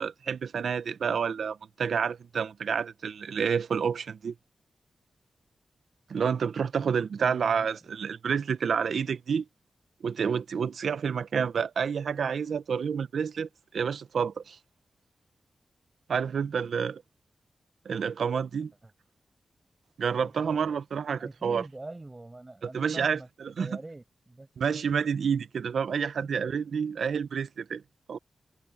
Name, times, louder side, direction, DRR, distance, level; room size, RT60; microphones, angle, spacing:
voice 1, 0.0-4.3 6.1-9.4 10.0-13.5 13.7-14.6 16.1-17.0 17.8-18.7 20.0-21.6 22.7-23.2 23.6-23.7 24.6-27.8 28.1-28.2, right 6 dB, 85° right, 0.7 m, -29 dB
voice 2, 7.2-7.7 18.8-18.9 20.2-20.8 21.2-24.5 26.2-26.3 26.6-27.0, right 2 dB, 20° right, 7.6 m, -44 dB
wide cardioid pair, 155°, 0 cm